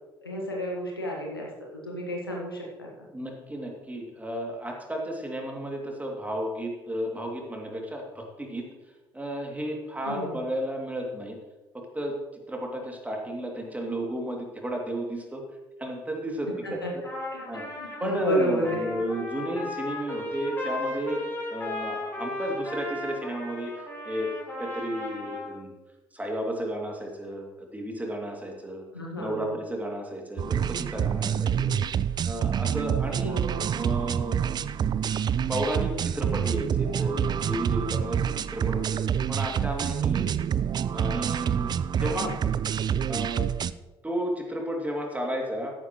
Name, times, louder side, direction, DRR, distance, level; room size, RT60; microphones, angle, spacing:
voice 1, 0.2-3.1 10.0-10.4 16.6-16.9 17.3-18.8 28.9-29.5 33.2-33.6 42.0-42.3, equal, 85° left, -2 dB, 1.7 m, -32 dB
voice 2, 3.1-8.7 9.1-11.4 11.7-12.1 12.5-15.4 15.8-17.0 17.5-17.6 18.0-21.2 21.5-23.7 24.0-24.3 24.6-25.7 26.1-28.9 29.2-31.8 32.2-33.3 33.7-34.8 35.5-38.9 39.3-40.3 40.9-42.3 43.1-43.5 44.0-45.7, right 1 dB, 15° right, 1 dB, 2.7 m, -33 dB
Trumpet, 17.0-25.6, left 1 dB, 20° left, 4.4 m, -35 dB
sound 1, 30.4-43.7, right 8 dB, 35° right, 0.4 m, -27 dB
13.5 x 10.5 x 3.2 m, 1.1 s
figure-of-eight pair, 45°, 12 cm